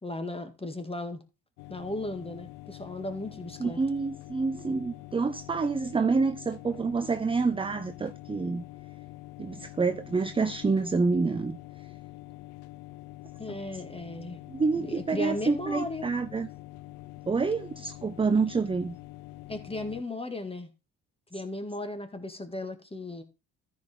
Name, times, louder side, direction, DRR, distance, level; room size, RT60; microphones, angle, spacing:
voice 1, 0.0-1.2 1.7-3.8 13.4-14.4 14.7-16.1 19.5-20.7 21.3-23.2, left 2 dB, 10° left, 1.9 m, -36 dB
sound 1, 1.6-20.0, left 18 dB, 80° left, 0.7 m, -46 dB
voice 2, 3.6-8.6 9.4-11.6 14.5-16.5 17.3-19.0, right 4 dB, 10° right, 0.5 m, -27 dB
14.0 x 5.2 x 3.6 m
hypercardioid pair, 60°, 48 cm